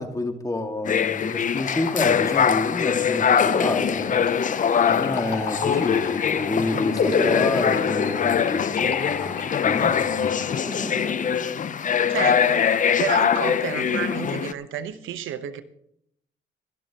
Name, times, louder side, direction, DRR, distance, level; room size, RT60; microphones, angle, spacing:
voice 1, 0.0-4.2 4.9-9.4 9.6-10.5, left 2 dB, 15° left, 5 dB, 1.9 m, -29 dB
sound 1, 0.8-14.5, left 7 dB, 40° left, 0.6 m, -23 dB
sound 2, 1.3-11.7, left 4 dB, 55° left, 3.9 m, -31 dB
voice 2, 12.1-15.6, right 10 dB, 80° right, 11 dB, 1.1 m, -31 dB
22.5 x 12.5 x 3.0 m, 0.73 s
cardioid pair, 90°, 20 cm